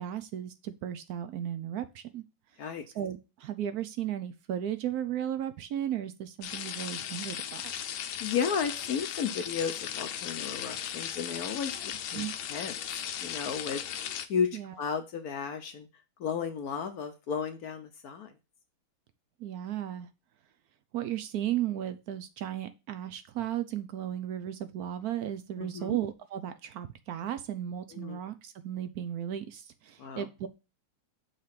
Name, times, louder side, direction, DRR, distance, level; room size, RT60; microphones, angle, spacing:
voice 1, 0.0-2.2 2.9-7.6 12.1-12.3 14.5-14.8 19.4-20.1 20.9-30.5, right 11 dB, 75° right, 11 dB, 0.8 m, -35 dB
sound 1, 6.4-14.3, left 10 dB, 85° left, 1.5 m, -37 dB
voice 2, 8.2-12.8 13.2-13.8 14.3-15.9 16.2-18.3 25.6-26.0 27.9-28.2 30.0-30.3, left 6 dB, 65° left, 7 dB, 1.0 m, -33 dB
6.6 x 3.3 x 5.8 m, 0.28 s
omnidirectional pair, 2.2 m